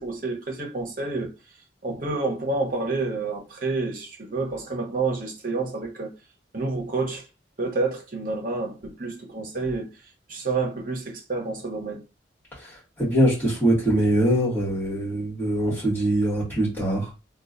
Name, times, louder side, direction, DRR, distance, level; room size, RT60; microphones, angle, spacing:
voice 1, 0.0-1.3 1.8-6.1 6.5-7.2 7.6-9.9 10.3-12.0, right 3 dB, 50° right, 1.0 m, -29 dB
voice 2, 13.0-17.1, right 1 dB, 10° left, 2.1 m, -22 dB
3.7 x 2.4 x 2.6 m
head